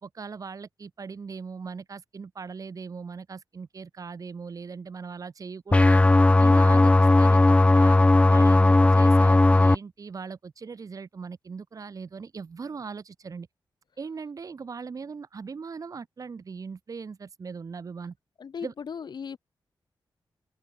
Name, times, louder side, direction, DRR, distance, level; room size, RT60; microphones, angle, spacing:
voice 1, 0.0-6.1 6.4-6.9 7.2-8.0 8.3-13.5 14.0-18.1 18.6-18.7, right 5 dB, 45° right, 2.0 m, -39 dB
sound 1, 5.7-9.8, left 2 dB, 15° left, 0.5 m, -17 dB
voice 2, 18.4-19.4, left 6 dB, 60° left, 2.4 m, -37 dB
open air
wide cardioid pair, 160°, 8 cm